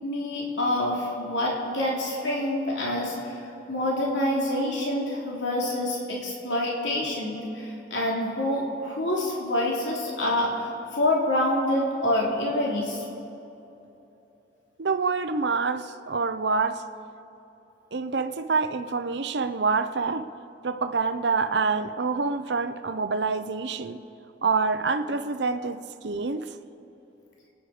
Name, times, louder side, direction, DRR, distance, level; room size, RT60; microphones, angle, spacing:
voice 1, 0.0-13.0, left 1 dB, 85° left, -4 dB, 3.2 m, -27 dB
voice 2, 14.8-16.8 17.9-20.3 20.6-24.0 24.4-26.5, right 4 dB, 70° right, 9 dB, 0.7 m, -26 dB
27.5 x 10.5 x 5.0 m, 2.9 s
head